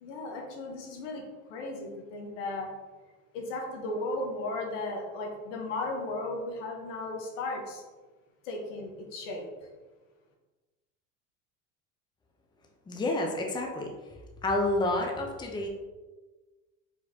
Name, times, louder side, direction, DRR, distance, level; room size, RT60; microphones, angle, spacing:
voice 1, 0.0-1.2 1.5-2.7 3.3-7.8 8.4-9.5, left 2 dB, 80° left, 1 dB, 1.2 m, -35 dB
voice 2, 12.9-13.9 14.4-15.7, left 2 dB, 10° left, 1 dB, 0.6 m, -29 dB
4.6 x 4.0 x 2.8 m, 1.2 s
supercardioid pair, 105°, 37 cm